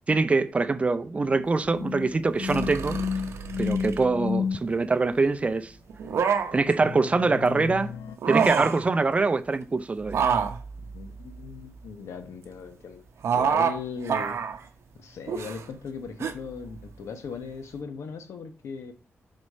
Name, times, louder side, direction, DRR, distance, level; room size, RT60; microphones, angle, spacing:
voice 1, 0.1-3.0 3.6-5.7 6.5-7.9 8.3-10.2, right 3 dB, 30° right, 0.5 m, -24 dB
sound 1, 1.1-4.6 6.8-8.2, left 6 dB, 65° left, 0.4 m, -32 dB
sound 2, 2.4-4.1 5.9-6.7 8.1-8.9 10.1-11.9 13.2-13.8 14.1-14.6 15.3-15.6 16.2-16.3, right 7 dB, 75° right, 0.7 m, -27 dB
voice 2, 10.8-13.0 13.3-14.4 15.0-18.9, left 5 dB, 90° left, 0.9 m, -38 dB
4.7 x 4.2 x 5.3 m
wide cardioid pair, 115°, 5 cm